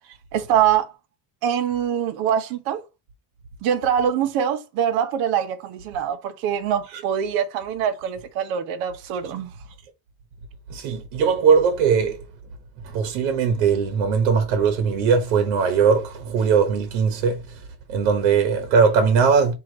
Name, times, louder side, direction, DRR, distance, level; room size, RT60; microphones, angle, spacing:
voice 1, 0.3-0.9 1.4-2.8 3.6-9.5, right 9 dB, 70° right, 1.0 m, -23 dB
voice 2, 10.7-12.2 12.8-17.6 17.9-19.5, right 6 dB, 85° right, 1.2 m, -20 dB
5.0 x 2.8 x 3.8 m
cardioid pair, 160°, 48 cm